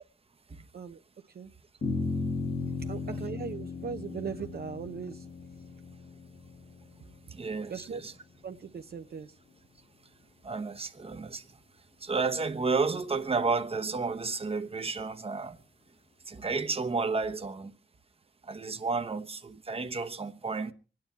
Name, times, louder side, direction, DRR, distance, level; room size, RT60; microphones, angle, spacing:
sound 1, 1.8-8.4, left 3 dB, 45° left, 1.7 m, -36 dB
voice 1, 2.8-5.3 7.7-8.0 8.4-9.3, right 6 dB, 55° right, 0.7 m, -39 dB
voice 2, 7.3-8.1 10.4-11.6 12.0-15.6 16.3-17.7 18.4-20.7, right 4 dB, 30° right, 1.0 m, -32 dB
25.5 x 9.6 x 4.5 m
wide cardioid pair, 110°, 19 cm